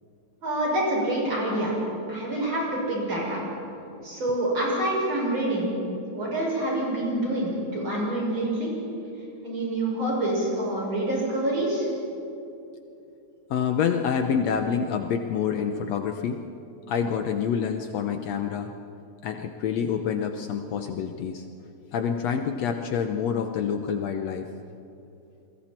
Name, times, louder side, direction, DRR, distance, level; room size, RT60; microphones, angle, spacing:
voice 1, 0.4-1.7 2.1-3.4 4.0-5.7 6.1-8.7 9.4-11.9, right 1 dB, 40° right, -4 dB, 7.1 m, -26 dB
voice 2, 13.5-16.4 16.9-18.7 19.2-21.5 21.9-24.5, left 7 dB, 70° left, 5 dB, 1.9 m, -27 dB
29.5 x 22.0 x 4.4 m, 2.8 s
omnidirectional pair, 3.4 m